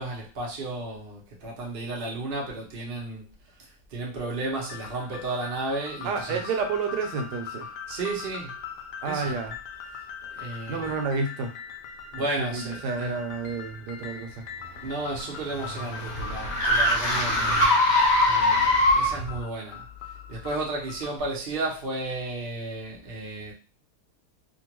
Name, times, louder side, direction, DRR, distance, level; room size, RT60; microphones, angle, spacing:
voice 1, 0.0-6.4 7.9-8.6 9.0-9.3 10.3-11.0 12.1-13.2 14.8-17.6 18.2-19.9 20.3-23.5, right 2 dB, 40° right, -3 dB, 0.9 m, -33 dB
sound 1, 4.5-21.2, left 6 dB, 85° left, 1.2 m, -41 dB
voice 2, 6.0-7.7 9.0-9.5 10.7-11.5 12.4-14.4, right 4 dB, 90° right, 4 dB, 1.3 m, -30 dB
sound 2, 14.8-19.4, left 1 dB, 65° left, 1.1 m, -22 dB
2.9 x 2.4 x 3.0 m, 0.34 s
omnidirectional pair, 1.8 m